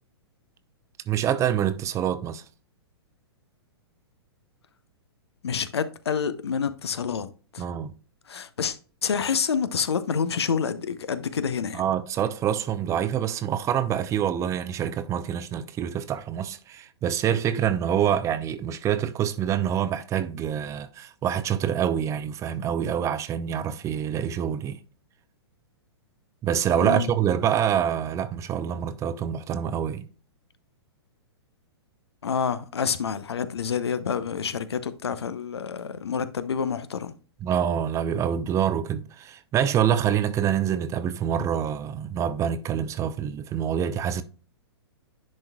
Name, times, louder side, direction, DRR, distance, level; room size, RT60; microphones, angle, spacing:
voice 1, 1.1-2.4 7.6-7.9 11.7-24.8 26.4-30.0 37.4-44.2, right 9 dB, 20° right, 0.6 m, -26 dB
voice 2, 5.4-7.3 7.5-7.6 8.3-11.8 26.7-27.1 32.2-37.1, left 6 dB, 70° left, 0.8 m, -28 dB
10.5 x 4.6 x 2.3 m
figure-of-eight pair, 110°, 14 cm